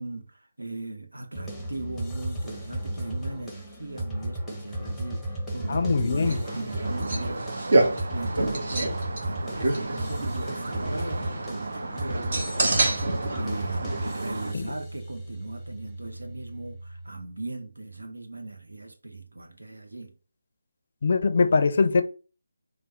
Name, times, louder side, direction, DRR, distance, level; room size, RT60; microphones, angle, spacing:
voice 1, 0.0-20.1, right 2 dB, 90° right, 0.9 m, -38 dB
sound 1, 1.3-17.1, right 1 dB, ahead, 0.8 m, -35 dB
voice 2, 5.7-6.4 14.5-14.6 21.0-22.0, left 4 dB, 50° left, 0.5 m, -22 dB
sound 2, 6.2-14.5, right 2 dB, 50° right, 1.1 m, -29 dB
sound 3, 6.8-14.5, right 2 dB, 70° right, 0.3 m, -37 dB
3.4 x 2.2 x 4.3 m
figure-of-eight pair, 160°, 0 cm